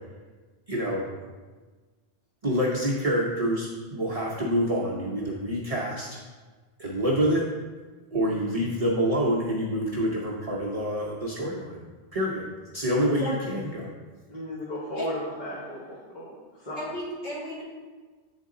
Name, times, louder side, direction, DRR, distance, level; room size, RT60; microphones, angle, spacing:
voice 1, 0.7-1.0 2.4-6.1 6.8-7.4 8.1-11.8 12.1-12.5 12.7-13.9, equal, 40° right, -3 dB, 0.7 m, -27 dB
voice 2, 8.2-8.7 14.3-16.8, left 1 dB, 45° left, -7 dB, 1.1 m, -36 dB
voice 3, 13.0-13.4 15.0-15.1 16.8-17.6, equal, 80° left, -8 dB, 2.1 m, -33 dB
8.0 x 3.9 x 3.7 m, 1.4 s
omnidirectional pair, 1.1 m